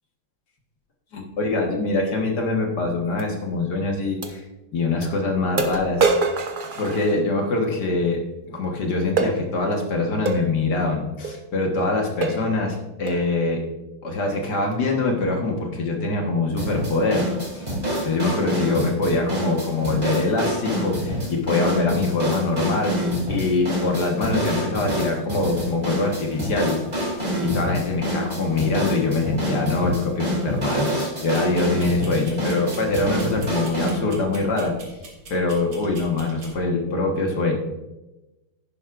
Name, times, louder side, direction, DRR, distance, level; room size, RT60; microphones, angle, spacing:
voice 1, 1.1-4.4 4.7-6.1 6.8-8.2 8.5-13.6 14.0-17.7 18.0-23.0 23.3-27.1 27.4-34.7 35.3-37.5, left 3 dB, 55° left, 1 dB, 1.9 m, -24 dB
sound 1, 3.2-3.3 4.2-4.3 5.0-5.1 5.6-7.5 9.2-9.4 10.3-10.5 11.2-11.4 11.8-11.9 12.2-12.5 13.1-13.3, right 4 dB, 85° right, 0.4 m, -24 dB
sound 2, 16.6-34.0, equal, 20° right, 2.9 m, -27 dB
sound 3, 31.3-36.6, right 3 dB, 60° right, 2.5 m, -44 dB
10.5 x 10.5 x 2.5 m, 1.0 s
omnidirectional pair, 2.3 m